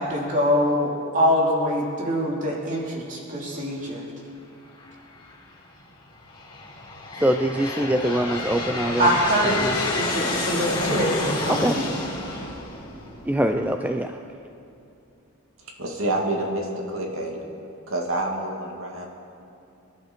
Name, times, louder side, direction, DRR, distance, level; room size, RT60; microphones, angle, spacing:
voice 1, 0.0-4.0 9.0-9.7 10.0-11.9 13.3-13.7, equal, 35° right, -2 dB, 2.7 m, -24 dB
Aircraft, 4.8-5.3 6.1-13.6, left 2 dB, 20° left, 3.6 m, -29 dB
voice 2, 7.2-9.2 9.6-9.9 11.5-11.8 13.3-14.2, right 1 dB, 5° right, 5 dB, 0.4 m, -24 dB
voice 3, 15.8-17.4 17.9-19.1, right 1 dB, 65° right, 0 dB, 2.3 m, -28 dB
25.5 x 11.5 x 4.5 m, 2.7 s
head